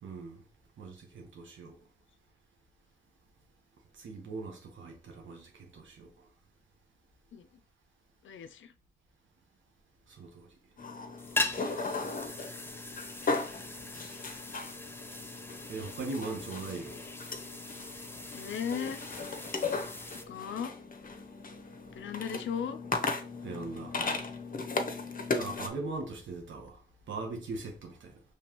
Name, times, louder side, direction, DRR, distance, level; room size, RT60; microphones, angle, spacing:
voice 1, 0.0-0.4 0.8-1.8 3.9-6.3 10.1-10.5 15.7-17.0 23.4-24.0 25.4-28.2, right 3 dB, 85° right, 1.1 m, -40 dB
voice 2, 8.2-8.7 16.5-16.6 18.3-19.0 20.3-20.7 21.9-22.8, left 7 dB, 85° left, 0.4 m, -36 dB
sound 1, 10.8-25.7, left 3 dB, 45° left, 0.7 m, -37 dB
sound 2, 11.2-20.2, left 2 dB, 10° left, 0.6 m, -40 dB
5.1 x 3.2 x 2.9 m
cardioid pair, 45°, 19 cm